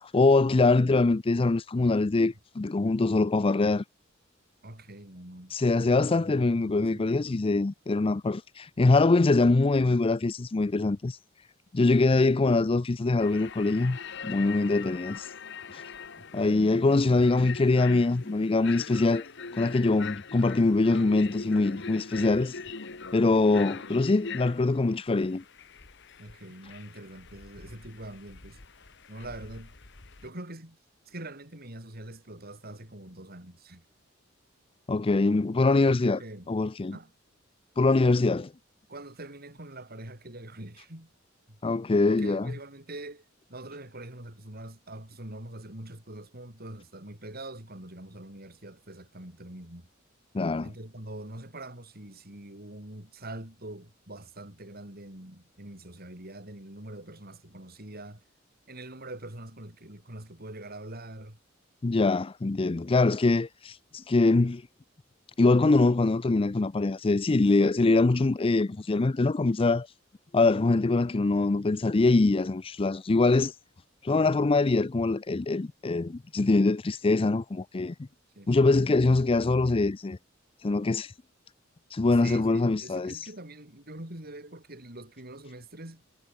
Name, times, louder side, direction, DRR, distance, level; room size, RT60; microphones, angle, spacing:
voice 1, 0.0-3.8 5.5-11.2 11.7-14.0 14.2-15.3 15.7-15.8 16.3-19.2 19.5-22.6 23.1-25.4 34.9-36.2 36.5-37.0 37.8-38.5 41.6-42.5 50.3-50.7 61.8-64.6 65.4-69.9 70.3-73.5 74.0-77.9 78.5-80.2 80.6-81.1 81.9-83.2, left 3 dB, 30° left, 0.5 m, -23 dB
voice 2, 4.6-5.5 5.9-7.4 16.2-17.8 26.2-28.6 29.1-29.7 30.2-30.8 31.1-33.8 35.8-36.5 36.9-37.1 38.9-41.1 41.5-41.6 42.1-43.2 43.5-49.9 50.6-58.2 58.7-61.4 78.3-78.6 82.2-86.0, right 1 dB, 50° right, 6.3 m, -44 dB
sound 1, 13.2-30.3, left 5 dB, 60° left, 1.9 m, -42 dB
head